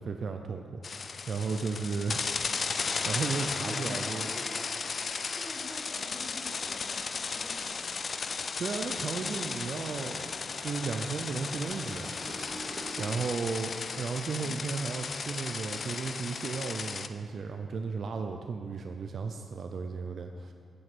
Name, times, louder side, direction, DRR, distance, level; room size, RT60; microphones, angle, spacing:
voice 1, 0.0-2.5 2.8-4.3 8.6-10.3 10.6-12.2 13.0-20.5, right 5 dB, 55° right, 5 dB, 0.5 m, -35 dB
sound 1, 0.8-17.1, left 5 dB, 45° left, 0.4 m, -35 dB
voice 2, 3.6-4.7 5.3-8.0 14.1-14.6, equal, 5° right, -6 dB, 2.9 m, -46 dB
sound 2, 8.7-13.2, right 2 dB, 40° right, 1.3 m, -47 dB
9.3 x 7.8 x 6.1 m, 2.4 s
cardioid pair, 105°, 0 cm